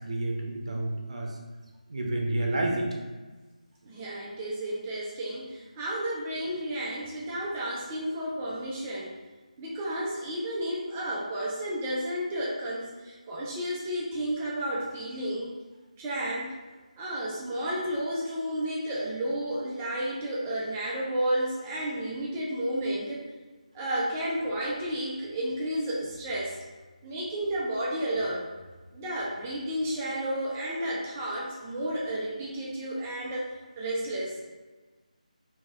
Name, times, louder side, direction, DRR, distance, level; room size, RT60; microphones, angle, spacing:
voice 1, 0.0-1.3 1.9-3.0, right 1 dB, 50° right, 1 dB, 0.7 m, -29 dB
voice 2, 3.8-9.1 9.6-15.5 16.0-16.6 17.0-23.2 23.7-26.5 27.0-28.4 28.9-33.5 33.8-34.4, right 1 dB, 15° right, -5 dB, 0.4 m, -32 dB
4.5 x 2.7 x 2.4 m, 1.3 s
figure-of-eight pair, 165°, 4 cm